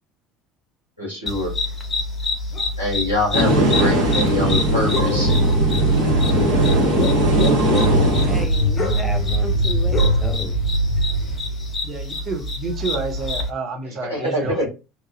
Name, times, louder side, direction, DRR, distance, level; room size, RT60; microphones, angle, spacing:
voice 1, 1.0-1.5 2.8-5.4 14.1-14.7, left 1 dB, 90° right, 1.4 m, -24 dB
sound 1, 1.3-13.5, left 2 dB, 20° left, 0.9 m, -27 dB
sound 2, 3.3-11.7, right 1 dB, 80° left, 0.4 m, -22 dB
sound 3, 3.3-8.4, right 1 dB, 60° right, 1.2 m, -20 dB
voice 2, 8.2-10.6, right 1 dB, ahead, 0.4 m, -32 dB
voice 3, 11.8-14.7, right 4 dB, 40° right, 0.7 m, -29 dB
3.0 x 2.4 x 2.6 m
figure-of-eight pair, 60°, 0 cm